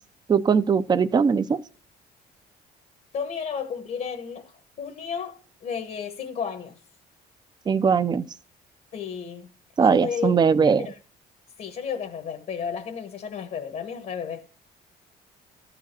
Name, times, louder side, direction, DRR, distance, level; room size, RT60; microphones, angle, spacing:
voice 1, 0.3-1.6 7.7-8.2 9.8-10.9, right 6 dB, 25° right, 0.6 m, -20 dB
voice 2, 3.1-4.5 4.8-6.8 8.9-9.5 9.8-11.0 11.6-14.5, left 6 dB, 55° left, 1.3 m, -33 dB
13.0 x 5.0 x 7.4 m
cardioid pair, 110°, 17 cm